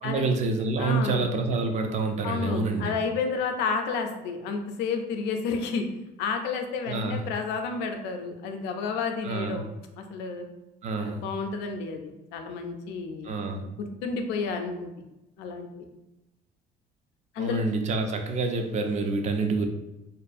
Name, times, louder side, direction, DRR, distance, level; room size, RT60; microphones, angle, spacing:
voice 1, 0.0-2.9 6.9-7.2 9.2-9.6 10.8-11.2 13.2-13.7 17.4-19.7, right 3 dB, 45° right, 5 dB, 0.4 m, -27 dB
voice 2, 0.8-1.3 2.2-5.9 6.2-9.7 10.0-10.4 11.0-13.7 14.0-14.9 15.4-15.8 17.3-17.6, left 5 dB, 85° left, 5 dB, 0.4 m, -31 dB
2.5 x 2.3 x 2.5 m, 0.95 s
cardioid pair, 110°, 17 cm